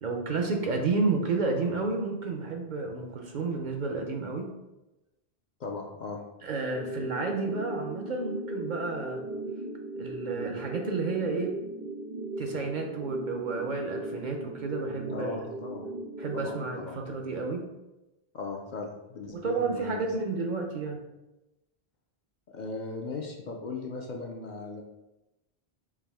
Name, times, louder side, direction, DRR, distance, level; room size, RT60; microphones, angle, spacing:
voice 1, 0.0-4.5 6.4-9.2 10.0-11.6 12.4-15.4 16.2-17.6 19.3-21.0, right 3 dB, 55° right, 2 dB, 0.6 m, -31 dB
voice 2, 5.6-6.2 15.1-15.9 16.3-17.1 18.3-20.0 22.5-24.8, left 3 dB, 55° left, 1 dB, 0.5 m, -38 dB
sound 1, 6.7-16.7, right 2 dB, 90° right, 1.2 m, -38 dB
4.7 x 2.6 x 3.4 m, 0.98 s
omnidirectional pair, 1.0 m